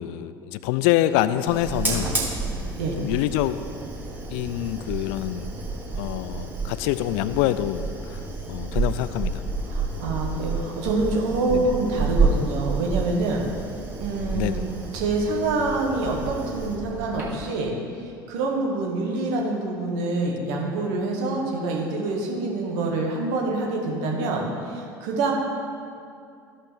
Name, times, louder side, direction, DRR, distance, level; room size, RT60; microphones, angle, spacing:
voice 1, 0.0-2.1 3.0-3.6 4.3-5.5 5.9-7.8 8.1-8.2 8.5-9.4 11.5-11.7 14.3-14.7, left 14 dB, 55° left, 13 dB, 0.4 m, -25 dB
Fire, 1.5-17.6, right 3 dB, 15° right, 2.0 m, -30 dB
voice 2, 9.7-13.4 14.0-14.6 14.9-17.7 18.3-25.3, right 3 dB, 55° right, -1 dB, 1.6 m, -26 dB
14.0 x 5.2 x 3.6 m, 2.4 s
figure-of-eight pair, 70°, 12 cm